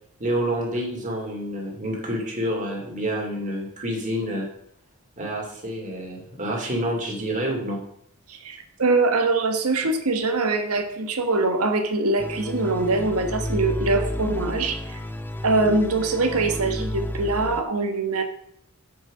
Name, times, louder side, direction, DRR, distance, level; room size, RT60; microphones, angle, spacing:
voice 1, 0.2-4.5 5.2-7.8, equal, 35° right, -1 dB, 2.7 m, -28 dB
voice 2, 8.3-14.8 15.4-18.2, right 3 dB, 80° right, 6 dB, 1.4 m, -23 dB
sound 1, 12.2-17.6, left 1 dB, 10° left, 0.5 m, -31 dB
7.5 x 6.3 x 6.2 m, 0.71 s
head